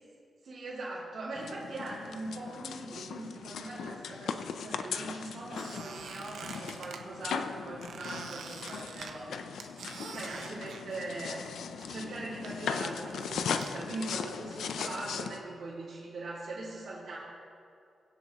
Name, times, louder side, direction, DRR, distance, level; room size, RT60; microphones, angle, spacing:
voice 1, 0.4-9.3 10.1-17.2, right 2 dB, 60° right, -9 dB, 2.5 m, -41 dB
sound 1, 1.3-15.4, left 6 dB, 85° left, 0.5 m, -38 dB
Squeak, 5.5-7.0 7.8-11.5 11.8-13.7, right 6 dB, 85° right, 0.8 m, -46 dB
23.0 x 8.0 x 3.0 m, 2.4 s
wide cardioid pair, 165°, 0 cm